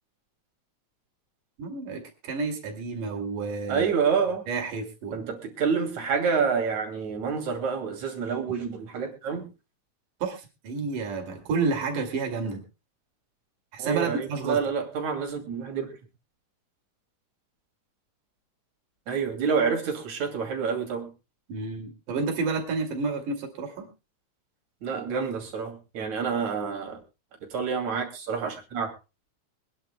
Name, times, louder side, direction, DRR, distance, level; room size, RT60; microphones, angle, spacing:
voice 1, 1.6-3.9 4.5-5.2 10.2-12.6 13.7-14.6 21.5-23.9, right 4 dB, 75° right, 2 dB, 4.1 m, -30 dB
voice 2, 3.7-4.4 5.1-9.5 13.8-15.9 19.1-21.1 24.8-27.0 27.5-28.9, right 6 dB, 60° right, 3 dB, 3.8 m, -28 dB
25.5 x 10.5 x 2.2 m, 0.29 s
omnidirectional pair, 3.7 m